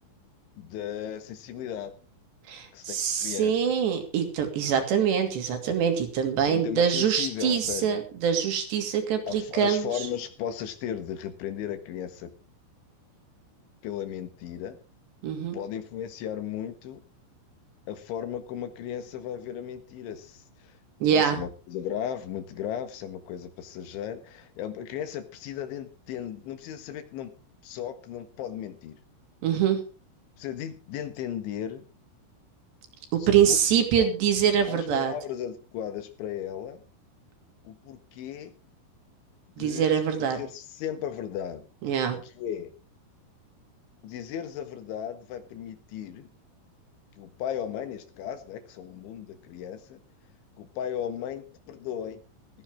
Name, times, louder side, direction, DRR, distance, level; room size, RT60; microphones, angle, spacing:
voice 1, 0.6-1.9 2.7-3.7 6.4-8.0 9.3-12.3 13.8-14.8 15.5-17.0 17.9-20.7 21.1-27.3 27.6-29.0 30.4-31.8 33.3-33.6 34.0-34.1 34.6-36.8 37.7-38.5 39.6-40.0 40.3-41.6 42.2-42.7 44.0-46.3 47.2-50.0 50.6-52.2, left 9 dB, 75° left, 10 dB, 3.8 m, -36 dB
voice 2, 2.5-9.9 15.2-15.6 21.0-21.4 29.4-29.8 33.1-35.1 39.6-40.4 41.8-42.2, right 8 dB, 60° right, 5 dB, 4.6 m, -24 dB
16.0 x 15.0 x 3.6 m, 0.33 s
omnidirectional pair, 5.8 m